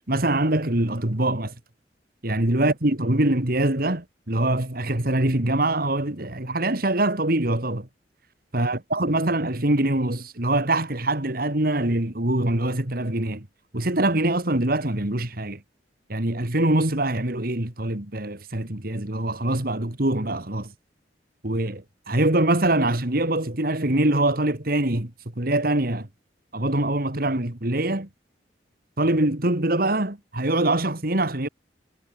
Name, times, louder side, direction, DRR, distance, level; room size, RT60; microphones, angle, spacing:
voice 1, 0.1-1.5 2.2-7.9 8.5-13.5 13.7-15.6 16.1-20.7 21.4-26.1 26.5-28.1 29.0-31.5, right 1 dB, 55° right, 2.6 m, -24 dB
head